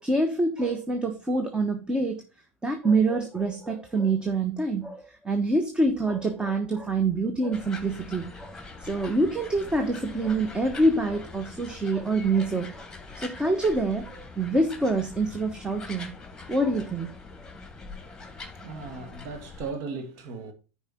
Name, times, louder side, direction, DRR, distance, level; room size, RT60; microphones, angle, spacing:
voice 1, 0.0-2.2 2.6-16.1 16.5-17.1, right 2 dB, 15° right, 1.2 m, -26 dB
sound 1, 7.5-19.7, left 3 dB, 10° left, 2.6 m, -43 dB
voice 2, 18.3-20.5, right 4 dB, 55° right, 1.7 m, -37 dB
10.5 x 4.8 x 4.2 m
hypercardioid pair, 85°, 7 cm